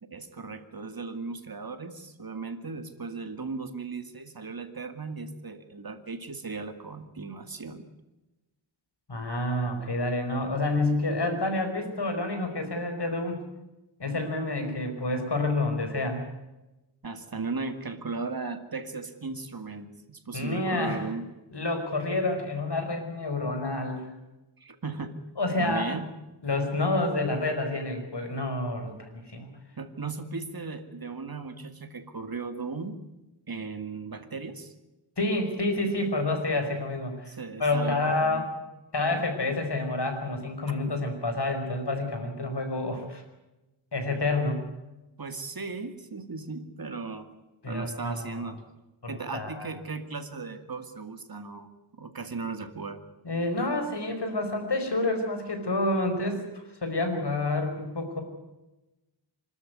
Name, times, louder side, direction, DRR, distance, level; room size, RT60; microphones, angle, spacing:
voice 1, 0.0-7.9 17.0-21.3 24.6-25.2 25.6-26.1 29.8-33.0 33.5-34.7 37.3-38.4 39.1-39.2 40.8-40.9 45.2-47.3 47.7-48.6 49.1-51.7 52.0-53.0, right 4 dB, 45° right, 8 dB, 2.3 m, -36 dB
voice 2, 9.1-13.4 14.0-16.2 20.3-21.0 21.5-24.1 25.4-25.9 26.4-29.5 35.2-37.3 37.6-38.5 38.9-43.2 43.9-44.6 47.6-48.5 49.0-49.7 53.2-58.2, left 2 dB, 55° left, 6 dB, 5.1 m, -28 dB
25.5 x 13.5 x 9.4 m, 1.0 s
wide cardioid pair, 75°, 48 cm